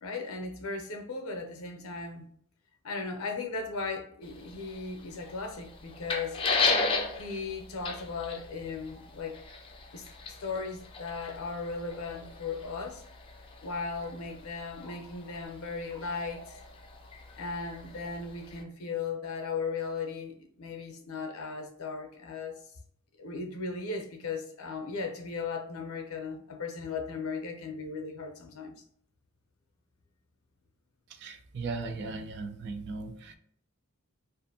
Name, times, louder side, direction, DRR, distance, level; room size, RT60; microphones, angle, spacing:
voice 1, 0.0-2.3 2.8-6.4 7.2-9.4 9.9-13.0 13.6-16.6 17.4-22.5 23.2-28.7, left 4 dB, 70° left, 0.5 m, -37 dB
sound 1, 4.2-18.6, left 3 dB, 25° left, 0.4 m, -36 dB
voice 2, 31.1-33.4, right 3 dB, 50° right, 0.3 m, -37 dB
2.5 x 2.4 x 2.7 m
head